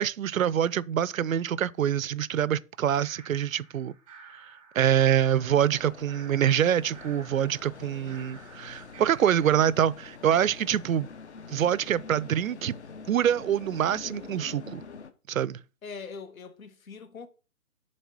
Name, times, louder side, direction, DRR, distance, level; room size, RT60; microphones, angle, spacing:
voice 1, 0.0-3.9 4.7-11.1 11.5-12.7 13.1-14.8 15.3-15.6, right 9 dB, 70° right, 0.5 m, -25 dB
sound 1, 2.9-9.7, right 5 dB, 5° right, 0.7 m, -51 dB
sound 2, 5.4-15.1, left 5 dB, 55° left, 0.9 m, -46 dB
voice 2, 7.7-8.3 15.8-17.3, left 5 dB, 70° left, 1.1 m, -43 dB
7.4 x 3.3 x 5.9 m
hypercardioid pair, 155°, 42 cm